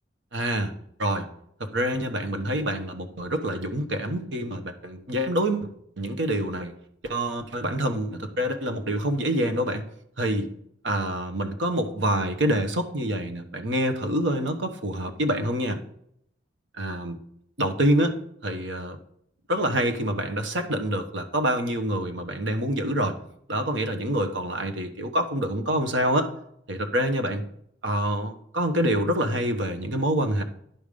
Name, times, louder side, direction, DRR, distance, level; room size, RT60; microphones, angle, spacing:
voice 1, 0.3-0.7 1.0-1.3 1.6-5.7 6.0-6.7 7.0-9.9 10.2-10.5 10.8-15.8 16.8-17.2 17.6-18.2 18.4-19.0 19.5-23.2 23.5-26.3 26.7-27.4 27.8-30.4, right 1 dB, 75° right, 6 dB, 1.1 m, -26 dB
10.5 x 5.3 x 5.0 m, 0.71 s
head